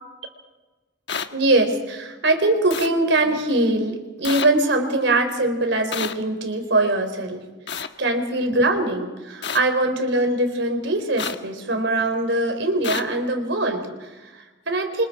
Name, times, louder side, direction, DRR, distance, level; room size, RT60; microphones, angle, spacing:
sound 1, 1.1-1.3 2.7-2.9 4.2-4.5 5.9-6.1 7.7-7.9 9.4-9.6 11.2-11.4 12.8-13.0, left 6 dB, 60° left, 1.3 m, -28 dB
voice 1, 1.3-7.5 7.7-15.0, right 2 dB, 70° right, 6 dB, 4.0 m, -22 dB
28.5 x 25.5 x 4.8 m, 1.2 s
head